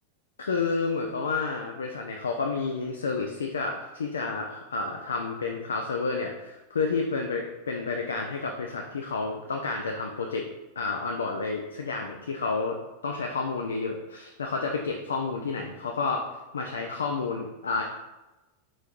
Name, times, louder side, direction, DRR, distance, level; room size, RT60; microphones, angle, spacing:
voice 1, 0.4-10.5 10.8-12.8 13.0-16.2 16.5-17.8, left 4 dB, 70° left, 2 dB, 0.3 m, -30 dB
4.3 x 3.0 x 2.4 m, 1.1 s
figure-of-eight pair, 90°, 0 cm